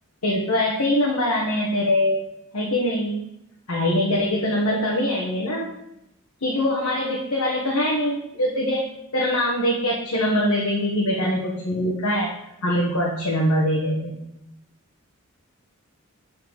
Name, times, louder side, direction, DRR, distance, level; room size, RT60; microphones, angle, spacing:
voice 1, 0.2-2.2 2.5-3.2 3.7-5.7 6.4-8.8 9.1-12.3 12.6-14.2, left 1 dB, 90° left, -4 dB, 1.5 m, -23 dB
12.0 x 4.5 x 4.1 m, 0.83 s
head